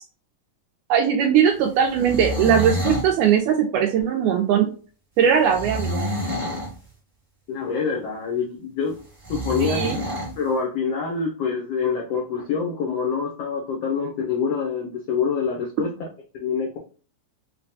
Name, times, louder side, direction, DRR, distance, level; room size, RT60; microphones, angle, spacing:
voice 1, 0.9-4.7 5.2-6.2 9.6-10.0, right 8 dB, 80° right, 3 dB, 1.8 m, -20 dB
sound 1, 1.9-3.1 5.5-6.7 9.2-10.3, right 1 dB, 30° right, 0.7 m, -28 dB
voice 2, 7.5-9.0 9.3-9.9 10.4-15.9 16.3-16.8, left 6 dB, 85° left, -1 dB, 1.4 m, -26 dB
5.7 x 2.2 x 2.6 m, 0.38 s
omnidirectional pair, 3.9 m